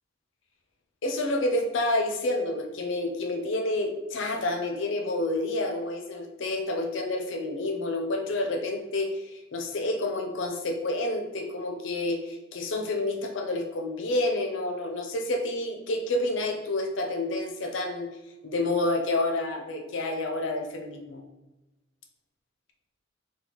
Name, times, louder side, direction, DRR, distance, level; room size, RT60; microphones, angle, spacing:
voice 1, 1.0-18.1 18.4-21.2, left 2 dB, 75° left, 3 dB, 0.6 m, -29 dB
4.0 x 2.3 x 2.9 m, 1.1 s
head